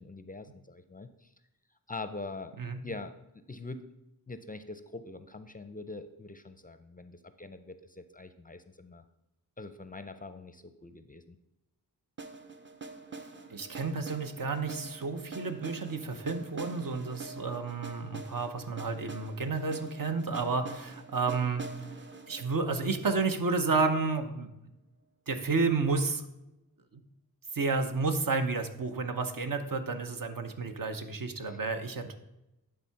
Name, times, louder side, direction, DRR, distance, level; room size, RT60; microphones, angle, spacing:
voice 1, 0.0-1.3 1.9-2.5 2.8-3.9 4.3-9.0 9.6-11.4 31.4-31.6, left 3 dB, 25° left, 10 dB, 0.4 m, -44 dB
sound 1, 12.2-24.1, right 4 dB, 30° right, 0.7 m, -45 dB
voice 2, 13.5-21.6 22.3-24.5 25.3-26.2 27.5-32.2, right 4 dB, 60° right, 7 dB, 0.9 m, -31 dB
10.0 x 3.7 x 5.7 m, 0.93 s
wide cardioid pair, 70°, 37 cm